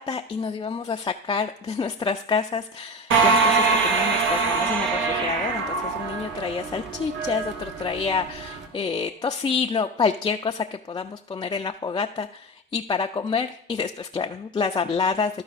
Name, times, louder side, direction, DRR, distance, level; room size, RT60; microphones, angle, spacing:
voice 1, 0.0-15.4, left 5 dB, 20° left, 4 dB, 0.4 m, -28 dB
sound 1, 3.1-6.8, right 4 dB, 80° right, 1.3 m, -22 dB
sound 2, 3.4-8.7, right 5 dB, 60° right, 1.6 m, -36 dB
13.0 x 4.7 x 4.1 m, 0.75 s
cardioid pair, 90°, 20 cm